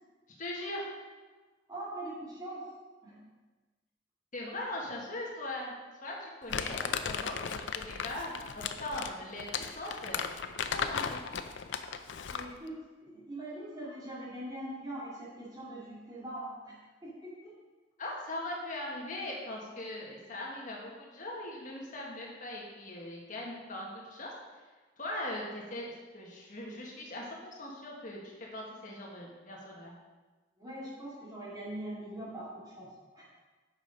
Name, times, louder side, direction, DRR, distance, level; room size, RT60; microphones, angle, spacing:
voice 1, 0.4-0.9 4.3-5.7 6.0-10.3 10.6-11.2 18.0-24.3 25.0-27.2 27.5-29.9, left 1 dB, 45° left, -2 dB, 1.7 m, -40 dB
voice 2, 1.7-2.6 3.0-3.2 12.3-16.7 17.0-17.5 30.6-32.9 33.1-33.3, right 1 dB, 20° right, -8 dB, 2.4 m, -42 dB
Crumpling crinkling, 6.5-12.6, left 6 dB, 80° left, 0.5 m, -36 dB
8.0 x 5.7 x 5.2 m, 1.3 s
head